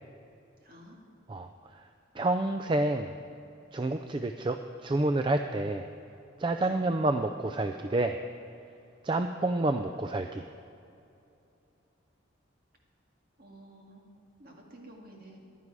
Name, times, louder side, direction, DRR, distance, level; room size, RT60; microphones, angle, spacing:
voice 1, 0.6-1.0 6.6-6.8 13.4-14.1 14.4-15.4, right 1 dB, 45° right, 0 dB, 2.0 m, -51 dB
voice 2, 1.3-1.9 2.1-3.1 3.7-5.9 6.4-8.2 9.0-10.5, right 2 dB, 25° right, 7 dB, 0.3 m, -29 dB
14.5 x 11.0 x 4.8 m, 2.7 s
head